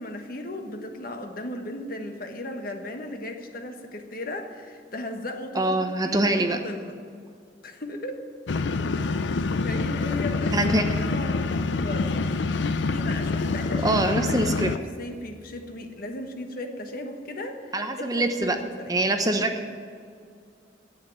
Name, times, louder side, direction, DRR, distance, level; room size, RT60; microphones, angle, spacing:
voice 1, 0.0-6.9 7.6-8.3 9.6-10.6 11.0-12.3 12.6-18.1 18.4-18.9, left 1 dB, 50° left, 5 dB, 1.3 m, -36 dB
voice 2, 5.5-6.6 10.5-10.8 13.8-14.7 17.7-18.6 18.9-19.5, right 1 dB, 20° right, 6 dB, 0.9 m, -24 dB
sound 1, 8.5-14.8, left 3 dB, 80° left, 0.6 m, -26 dB
11.0 x 8.8 x 9.5 m, 2.2 s
head